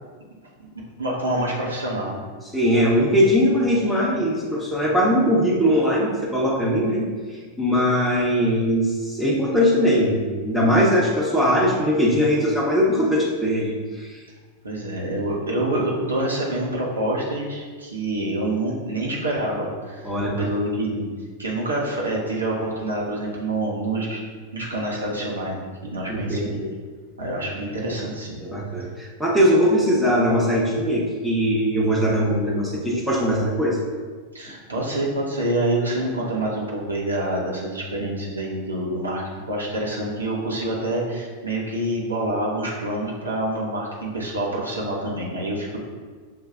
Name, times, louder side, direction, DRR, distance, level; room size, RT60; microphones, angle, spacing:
voice 1, 0.7-2.2 14.6-21.1 21.4-24.2 24.5-26.5 27.2-28.4 34.3-45.8, right 1 dB, 85° right, -4 dB, 0.9 m, -27 dB
voice 2, 2.5-14.2 20.0-20.5 26.1-26.7 28.4-33.8, equal, 5° right, -6 dB, 0.9 m, -21 dB
6.7 x 3.1 x 2.4 m, 1.5 s
figure-of-eight pair, 95°, 0 cm